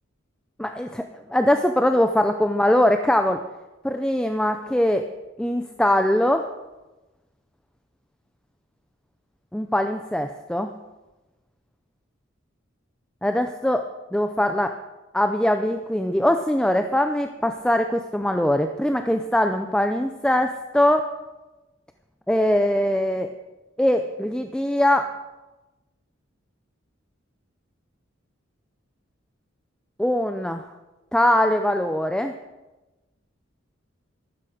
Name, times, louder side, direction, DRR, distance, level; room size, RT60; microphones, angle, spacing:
voice 1, 0.6-1.0 1.3-3.4 3.8-5.0 5.4-6.5 9.5-10.7 13.2-13.9 14.1-14.7 15.1-21.1 22.3-23.3 23.8-25.1 30.0-30.6 31.1-32.3, left 1 dB, 5° left, 6 dB, 0.5 m, -22 dB
14.5 x 12.0 x 5.0 m, 1.1 s
head